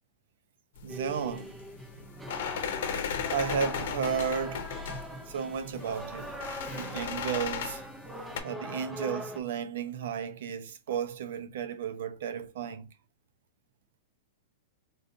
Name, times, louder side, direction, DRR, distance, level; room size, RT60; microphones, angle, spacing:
sound 1, 0.8-8.4, left 8 dB, 65° left, 0.7 m, -37 dB
voice 1, 0.8-1.6 2.9-4.7 5.3-6.3 6.7-7.8 8.4-12.9, right 7 dB, 65° right, 0.6 m, -33 dB
sound 2, 0.9-9.4, equal, 5° right, 0.4 m, -42 dB
3.9 x 2.5 x 2.6 m
supercardioid pair, 165°, 0 cm